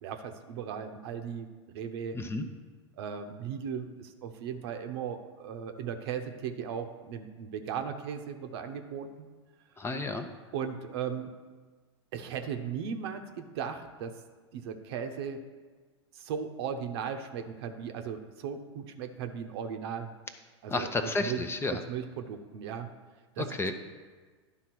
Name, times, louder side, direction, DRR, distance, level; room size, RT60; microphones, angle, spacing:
voice 1, 0.0-1.5 1.7-2.2 3.0-9.3 10.5-11.3 12.1-14.1 14.5-15.4 16.1-20.1 20.6-21.4 21.7-22.9 23.4-23.7, right 7 dB, 65° right, 6 dB, 0.9 m, -37 dB
voice 2, 2.1-2.5 9.8-10.3 20.7-21.8 23.4-23.7, left 3 dB, 15° left, 7 dB, 0.7 m, -31 dB
11.0 x 3.7 x 6.0 m, 1.4 s
hypercardioid pair, 95°, 15 cm